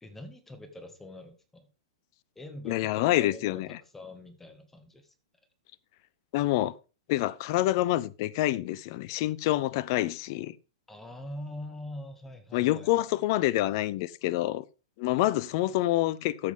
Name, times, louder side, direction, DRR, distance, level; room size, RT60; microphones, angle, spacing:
voice 1, 0.0-1.7 2.4-3.6 3.9-5.1 10.9-13.0, left 1 dB, 10° left, 1.9 m, -43 dB
voice 2, 2.6-3.8 6.3-6.7 7.1-10.5 12.5-14.6 15.0-16.5, left 16 dB, 50° left, 0.6 m, -27 dB
13.0 x 8.3 x 3.7 m
figure-of-eight pair, 105°, 3 cm